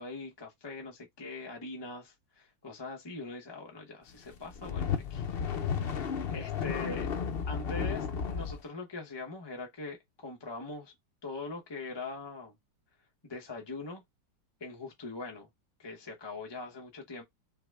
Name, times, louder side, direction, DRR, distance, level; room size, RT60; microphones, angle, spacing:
voice 1, 0.0-5.3 5.5-5.9 6.3-7.1 7.5-10.9 11.2-12.5 13.2-14.0 14.6-15.5 15.8-17.2, left 3 dB, 25° left, 0.6 m, -42 dB
sound 1, 4.3-8.6, left 7 dB, 75° left, 0.5 m, -33 dB
5.8 x 2.2 x 3.4 m
omnidirectional pair, 2.0 m